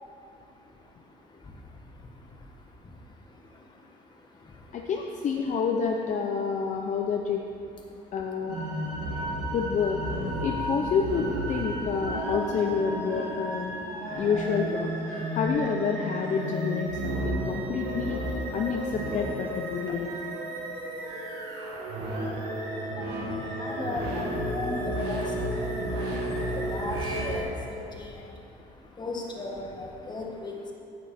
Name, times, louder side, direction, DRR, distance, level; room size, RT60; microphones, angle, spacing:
voice 1, 0.0-5.2 6.6-6.9 7.9-9.5 11.7-12.0 13.7-14.2 15.1-15.4 17.3-17.7 18.5-18.6 19.9-20.0 20.4-30.7, left 2 dB, 25° left, 0 dB, 1.5 m, -41 dB
voice 2, 4.7-7.4 8.1-8.6 9.5-10.0 10.4-13.7 14.1-18.2 18.5-20.1, left 6 dB, 45° left, 1 dB, 0.7 m, -28 dB
sound 1, 8.5-27.4, right 1 dB, 85° right, 2.0 m, -32 dB
9.3 x 8.6 x 4.3 m, 2.7 s
cardioid pair, 110°, 17 cm